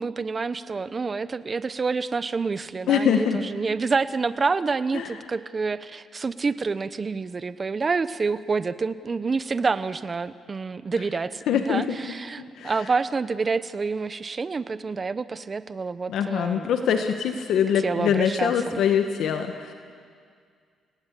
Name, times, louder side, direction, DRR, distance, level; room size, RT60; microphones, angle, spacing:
voice 1, 0.0-16.7 17.8-18.8, right 4 dB, 35° right, 14 dB, 1.0 m, -28 dB
voice 2, 2.9-3.4 4.9-5.1 11.5-12.0 12.6-12.7 16.1-19.7, left 8 dB, 75° left, 6 dB, 1.6 m, -23 dB
29.5 x 18.5 x 8.4 m, 2.1 s
cardioid pair, 90°, 0 cm